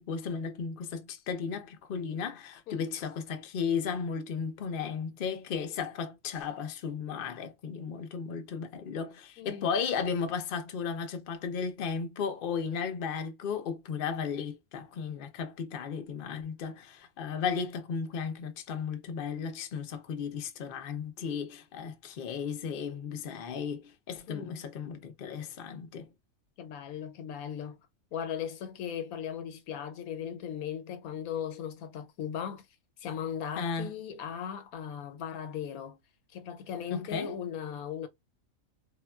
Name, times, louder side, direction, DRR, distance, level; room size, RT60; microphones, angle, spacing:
voice 1, 0.0-26.1 33.6-33.9 36.9-37.3, left 6 dB, 50° left, 0.6 m, -35 dB
voice 2, 9.4-9.7 24.3-24.6 26.6-27.8 28.1-32.7 33.0-36.0 36.3-38.1, left 8 dB, 85° left, 1.1 m, -38 dB
3.6 x 2.2 x 2.3 m
omnidirectional pair, 1.5 m